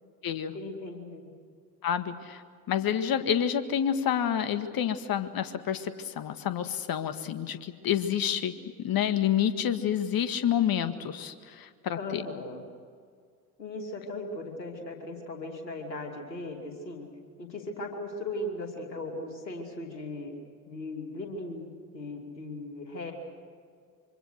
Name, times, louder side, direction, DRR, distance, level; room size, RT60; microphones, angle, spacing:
voice 1, 0.5-1.3 12.0-12.6 13.6-17.1 17.4-20.3 20.7-23.1, left 2 dB, 85° left, 3 dB, 3.0 m, -38 dB
voice 2, 1.8-2.4 2.7-12.2, left 9 dB, 45° left, 10 dB, 1.9 m, -28 dB
26.0 x 25.0 x 6.5 m, 2.1 s
figure-of-eight pair, 55°, 49 cm